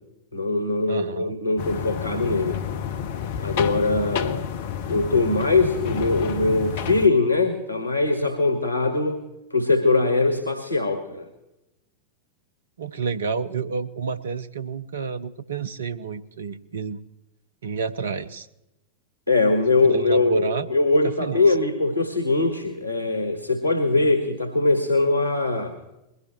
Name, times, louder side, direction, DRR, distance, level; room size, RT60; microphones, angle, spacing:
voice 1, 0.3-2.6 3.4-4.5 4.9-9.2 9.5-11.3 19.3-25.8, left 3 dB, 90° right, 6 dB, 1.6 m, -22 dB
voice 2, 0.9-1.3 12.8-17.0 17.6-18.5 19.8-20.7 21.0-21.4, right 5 dB, 65° right, 13 dB, 0.8 m, -30 dB
sound 1, 1.6-7.1, left 8 dB, 55° left, 0.8 m, -30 dB
21.5 x 16.5 x 3.1 m, 0.92 s
figure-of-eight pair, 90°, 0 cm